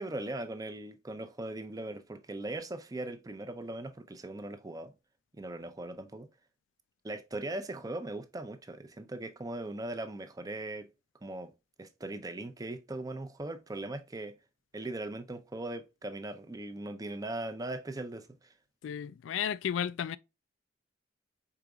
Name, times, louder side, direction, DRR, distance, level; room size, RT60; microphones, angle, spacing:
voice 1, 0.0-4.9 5.3-6.3 7.0-10.9 11.2-11.5 11.8-14.4 14.7-18.5, right 2 dB, 20° right, 0.5 m, -39 dB
voice 2, 18.8-20.2, left 8 dB, 85° left, 0.3 m, -33 dB
4.8 x 3.9 x 2.3 m
head